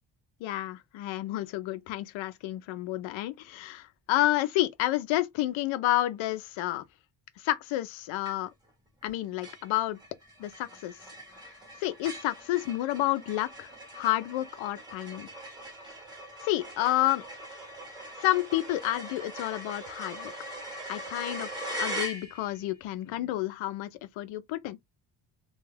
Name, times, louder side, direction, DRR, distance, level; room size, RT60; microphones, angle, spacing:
voice 1, 0.4-6.8 7.4-8.5 9.0-10.0 10.4-11.0 11.8-15.3 16.4-17.2 18.2-20.3 20.9-23.9 24.2-24.8, left 15 dB, 75° left, 0.6 m, -30 dB
sound 1, 8.2-8.7 9.0-9.1 9.4-22.7, equal, 10° right, 1.0 m, -41 dB
2.3 x 2.2 x 3.2 m
cardioid pair, 150°, 47 cm